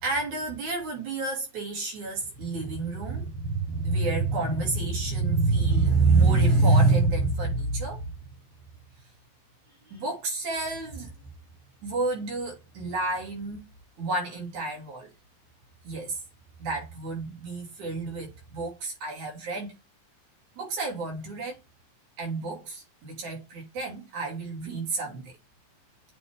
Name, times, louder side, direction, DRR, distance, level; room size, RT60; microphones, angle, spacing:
voice 1, 0.0-8.1 9.9-11.1 11.8-13.7 14.0-15.1 15.8-16.2 16.6-19.8 20.6-21.6 22.2-25.3, right 3 dB, 85° right, 4.0 m, -27 dB
8.4 x 3.6 x 3.4 m
omnidirectional pair, 3.3 m